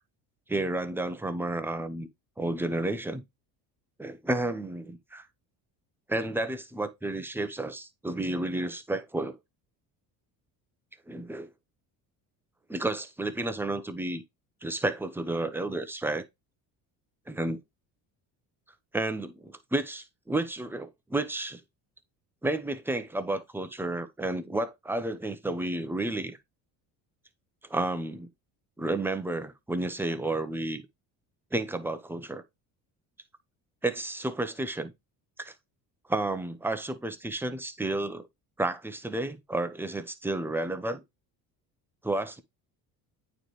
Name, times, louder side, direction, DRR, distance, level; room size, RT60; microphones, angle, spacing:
voice 1, 0.5-2.1 2.4-3.2 4.0-5.3 6.1-9.4 11.1-11.5 12.7-14.2 14.6-16.2 17.3-17.6 18.9-21.6 22.4-26.4 27.7-28.3 28.8-30.9 31.5-32.4 33.8-34.9 35.4-35.5 36.1-38.3 38.6-41.0 42.0-42.4, right 2 dB, 5° right, 0.8 m, -31 dB
9.0 x 3.4 x 3.1 m
supercardioid pair, 80°, 44 cm